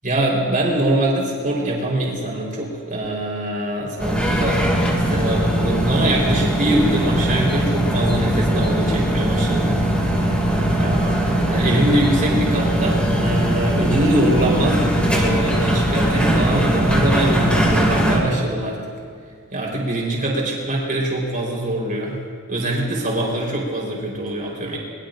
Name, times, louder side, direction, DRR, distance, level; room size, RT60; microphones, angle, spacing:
voice 1, 0.0-4.6 4.9-9.8 10.2-18.8 19.5-22.2 22.5-24.8, right 1 dB, 40° right, -3 dB, 4.3 m, -23 dB
sound 1, 4.0-18.2, right 1 dB, 5° left, 2.5 m, -20 dB
22.0 x 21.5 x 2.6 m, 2.2 s
head